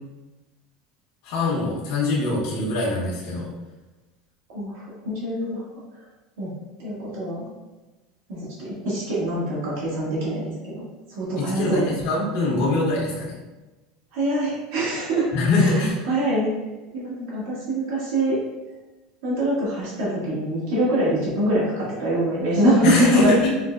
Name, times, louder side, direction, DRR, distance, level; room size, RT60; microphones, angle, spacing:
voice 1, 1.2-3.5 11.4-13.3 15.3-16.0 22.8-23.5, left 2 dB, 70° left, -5 dB, 1.1 m, -23 dB
voice 2, 4.5-6.0 6.4-6.5 6.8-7.5 8.3-11.9 14.1-15.3 15.6-16.5 16.9-18.4 19.2-23.3, right 1 dB, 90° right, -8 dB, 1.2 m, -24 dB
5.1 x 2.1 x 2.4 m, 1.1 s
supercardioid pair, 130°, 0 cm